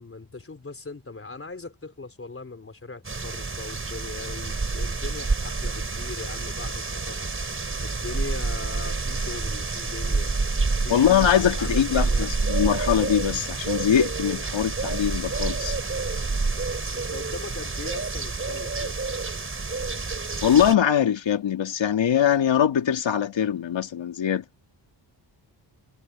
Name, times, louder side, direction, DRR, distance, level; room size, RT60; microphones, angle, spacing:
voice 1, 0.0-11.1 11.6-12.5 16.9-19.0, left 3 dB, 30° left, 4.2 m, -40 dB
sound 1, 3.0-20.7, right 3 dB, 30° right, 6.1 m, -28 dB
voice 2, 10.9-15.8 20.4-24.4, left 9 dB, 75° left, 2.3 m, -22 dB
wide cardioid pair, 135°, 45 cm